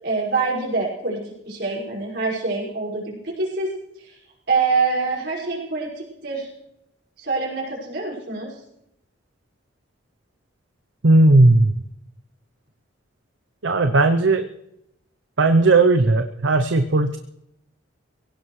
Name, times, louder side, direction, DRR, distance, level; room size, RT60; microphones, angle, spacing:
voice 1, 0.0-3.7 4.5-6.5 7.2-8.5, right 4 dB, 60° right, -4 dB, 5.6 m, -25 dB
voice 2, 11.0-11.7 13.6-14.5 15.4-17.2, right 2 dB, 75° right, 7 dB, 0.8 m, -16 dB
22.0 x 17.0 x 3.2 m, 0.82 s
head